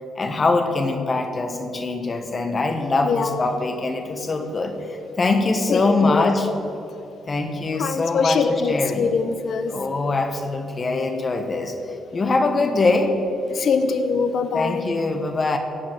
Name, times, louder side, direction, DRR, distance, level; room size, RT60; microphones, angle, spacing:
voice 1, 0.1-6.5 7.3-8.4 8.7-9.1 9.7-13.2 14.5-15.6, left 3 dB, 35° left, 6 dB, 1.5 m, -23 dB
voice 2, 3.0-3.5 5.7-6.6 7.7-9.8 13.5-14.9, left 5 dB, 60° left, 10 dB, 0.8 m, -23 dB
16.5 x 6.0 x 9.3 m, 2.9 s
cardioid pair, 90°, 0 cm